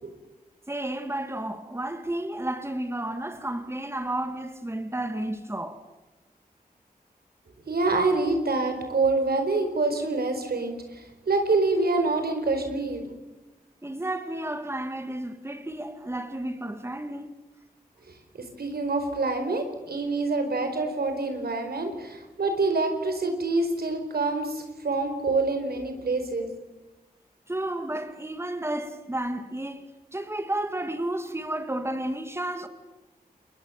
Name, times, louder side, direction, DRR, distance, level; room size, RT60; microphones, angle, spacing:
voice 1, 0.7-5.8 13.8-17.4 27.5-32.7, right 1 dB, 15° right, 2.0 m, -32 dB
voice 2, 7.7-13.1 18.6-26.5, right 3 dB, 75° right, 4.7 m, -26 dB
28.5 x 21.5 x 7.3 m
cardioid pair, 50°, 16 cm